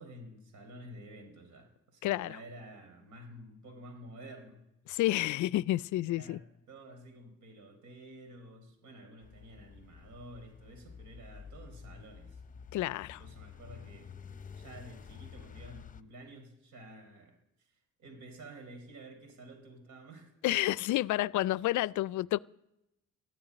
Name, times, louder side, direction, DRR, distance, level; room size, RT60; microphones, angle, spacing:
voice 1, 0.0-4.6 6.0-12.4 12.9-14.1 14.5-20.3, right 1 dB, 75° right, 4.3 m, -51 dB
voice 2, 2.0-2.4 4.9-6.4 12.7-13.2 20.4-22.4, left 16 dB, 75° left, 0.4 m, -30 dB
sound 1, 9.2-16.0, left 6 dB, 25° left, 0.8 m, -50 dB
14.0 x 9.0 x 9.8 m
cardioid pair, 90°, 30 cm